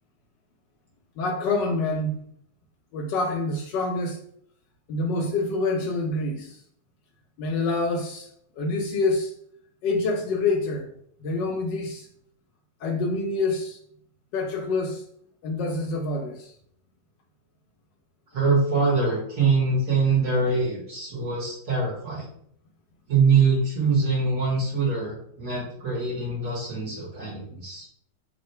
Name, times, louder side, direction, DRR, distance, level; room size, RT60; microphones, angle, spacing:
voice 1, 1.2-2.1 2.9-4.2 4.9-6.6 7.4-8.3 8.6-9.3 9.8-10.9 11.2-12.1 12.8-13.8 14.3-15.0 15.4-16.5, left 3 dB, 70° left, 1.2 m, -26 dB
voice 2, 18.3-22.3 23.1-27.8, right 4 dB, 45° right, 1.6 m, -23 dB
3.7 x 2.4 x 4.2 m
omnidirectional pair, 2.1 m